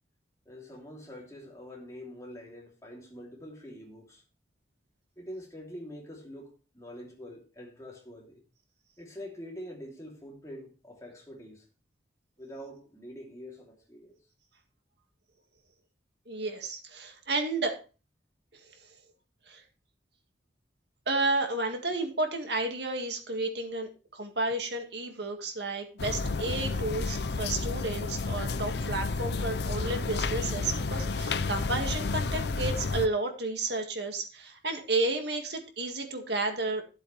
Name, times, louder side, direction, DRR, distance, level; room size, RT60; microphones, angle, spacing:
voice 1, 0.4-4.2 5.2-8.4 9.0-11.6 12.4-14.1, equal, 15° left, 2.9 m, -45 dB
voice 2, 16.3-17.8 18.5-18.6 19.5-19.6 21.1-36.8, right 2 dB, 65° right, 2.0 m, -32 dB
sound 1, 26.0-33.1, left 3 dB, 60° left, 0.6 m, -31 dB
13.5 x 8.0 x 3.3 m
head